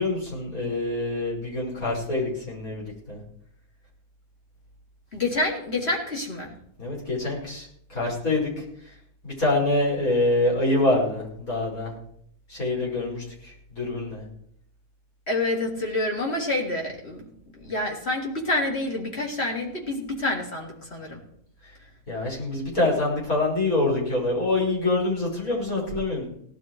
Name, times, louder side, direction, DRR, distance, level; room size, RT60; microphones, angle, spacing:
voice 1, 0.0-3.2 6.8-7.7 7.9-8.5 9.2-11.9 12.5-13.2 13.7-14.2 22.1-26.3, left 2 dB, 65° left, -4 dB, 6.5 m, -25 dB
voice 2, 5.1-6.5 15.3-17.3 17.6-21.2, left 2 dB, 45° left, -1 dB, 3.7 m, -27 dB
18.5 x 11.5 x 4.8 m, 0.69 s
omnidirectional pair, 1.6 m